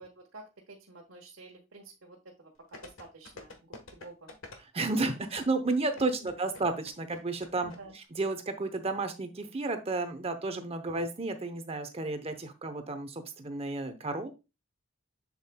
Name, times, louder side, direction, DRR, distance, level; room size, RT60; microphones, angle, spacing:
voice 1, 0.0-3.6 3.9-4.4 6.2-6.3 7.6-7.9, right 3 dB, 85° right, -1 dB, 1.2 m, -50 dB
sound 1, 2.7-7.8 8.0-8.1, left 2 dB, 80° left, 1.3 m, -47 dB
voice 2, 4.7-14.3, right 3 dB, 30° right, 8 dB, 0.8 m, -32 dB
7.4 x 7.1 x 2.2 m, 0.27 s
head